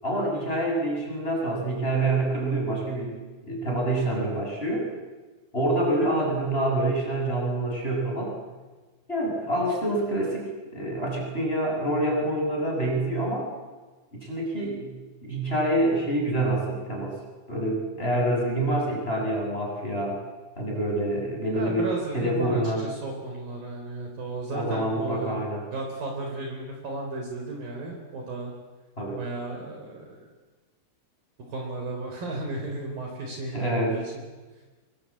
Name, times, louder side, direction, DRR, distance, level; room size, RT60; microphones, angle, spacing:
voice 1, 0.0-3.2 3.5-4.9 5.5-8.3 9.1-13.5 14.1-14.9 15.2-17.1 17.5-20.2 20.6-21.9 22.1-22.8 24.5-25.6 29.0-29.2 33.5-34.0, right 1 dB, 10° left, -2 dB, 7.0 m, -26 dB
voice 2, 21.5-25.4 25.7-28.5 29.2-30.2 31.5-34.3, right 2 dB, 45° right, 1 dB, 5.3 m, -34 dB
25.5 x 24.0 x 8.6 m, 1.3 s
omnidirectional pair, 5.7 m